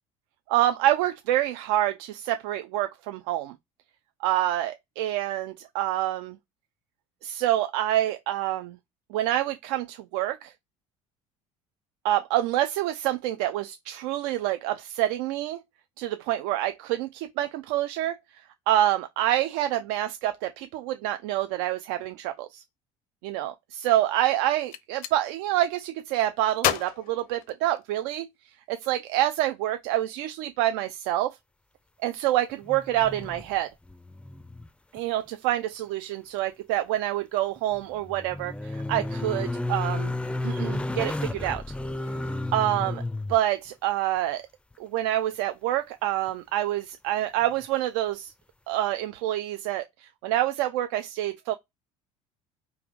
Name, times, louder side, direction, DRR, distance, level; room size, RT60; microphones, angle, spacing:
voice 1, 0.5-3.5 4.2-6.4 7.2-8.8 9.1-10.5 12.0-15.6 16.0-18.2 18.7-22.6 23.2-28.3 28.7-31.3 32.0-33.7 34.9-40.1 40.4-41.6 42.5-43.0 43.3-44.4 44.8-48.3 48.7-51.5, right 13 dB, 75° right, 0.4 m, -27 dB
Gunshot gunfire, 24.5-25.2 26.6-28.1, left 12 dB, 65° left, 0.6 m, -30 dB
sound 1, 32.6-33.6 33.9-34.7 35.0-35.1 37.6-43.4 46.3-46.4, left 2 dB, 5° left, 0.4 m, -32 dB
3.4 x 2.5 x 3.4 m
hypercardioid pair, 80°, 16 cm